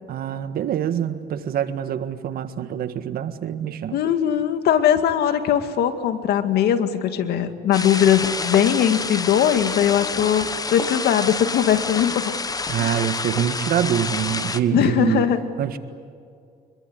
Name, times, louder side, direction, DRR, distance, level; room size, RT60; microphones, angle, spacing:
voice 1, 0.1-4.0 12.7-15.2 15.6-15.8, right 10 dB, 60° right, 10 dB, 1.7 m, -25 dB
voice 2, 3.9-12.3 12.8-13.1 14.7-15.4, left 9 dB, 70° left, 9 dB, 2.1 m, -20 dB
sound 1, 7.7-14.6, left 4 dB, 20° left, 1.2 m, -28 dB
25.5 x 22.5 x 9.7 m, 2.3 s
cardioid pair, 110°, 17 cm